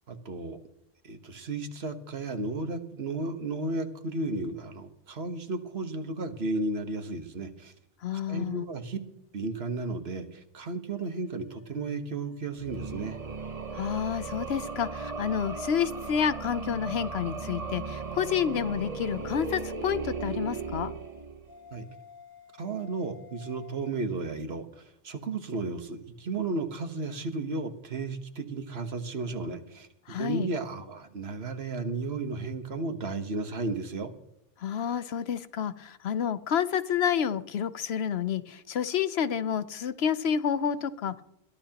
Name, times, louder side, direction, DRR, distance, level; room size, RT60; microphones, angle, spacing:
voice 1, 0.1-0.6 1.0-7.7 8.1-9.0 9.3-13.2 21.7-21.8 22.6-34.1, right 3 dB, 80° right, 8 dB, 1.5 m, -34 dB
voice 2, 8.0-8.7 13.7-20.9 30.1-30.5 34.6-41.2, left 8 dB, 85° left, 13 dB, 1.0 m, -29 dB
sound 1, 10.9-13.8 14.2-17.5 17.8-23.9, left 2 dB, 20° left, 2.4 m, -53 dB
sound 2, 12.6-21.6, right 4 dB, 40° right, 0.9 m, -37 dB
22.0 x 13.5 x 2.9 m, 0.81 s
omnidirectional pair, 1.0 m